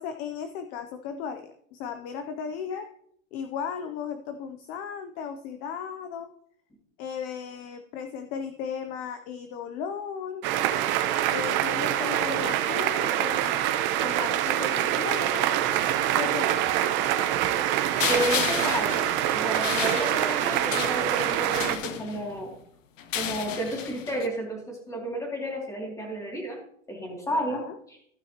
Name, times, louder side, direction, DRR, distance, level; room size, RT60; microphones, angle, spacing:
voice 1, 0.0-2.9 3.3-6.3 7.0-10.4 11.3-15.5 16.1-16.6 27.3-27.8, left 7 dB, 25° left, 8 dB, 0.4 m, -36 dB
sound 1, 10.4-21.8, right 12 dB, 30° right, 0.7 m, -25 dB
sound 2, 18.0-22.4 23.0-24.3, left 9 dB, 85° left, 1.1 m, -33 dB
voice 2, 18.1-19.1 19.3-22.5 23.1-26.6 26.9-27.6 27.9-28.0, right 1 dB, 10° left, 0 dB, 2.4 m, -31 dB
14.5 x 6.3 x 2.8 m, 0.69 s
supercardioid pair, 145°, 38 cm